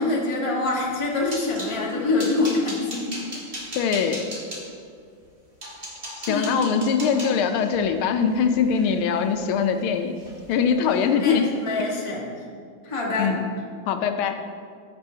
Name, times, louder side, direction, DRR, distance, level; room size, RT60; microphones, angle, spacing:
voice 1, 0.0-3.1 6.3-6.7 11.2-12.2 12.8-13.3, left 2 dB, 20° left, -3 dB, 0.9 m, -25 dB
sound 1, 0.9-1.7 2.2-4.6 5.2-5.3 5.6-9.8 10.2-10.6 10.8-11.1 11.5-11.6, equal, 25° right, 1.6 m, -37 dB
voice 2, 3.7-4.2 6.2-10.1 10.5-11.5 13.2-13.5 13.9-14.4, left 6 dB, 85° left, 7 dB, 1.4 m, -22 dB
14.0 x 6.2 x 2.7 m, 2.2 s
omnidirectional pair, 2.3 m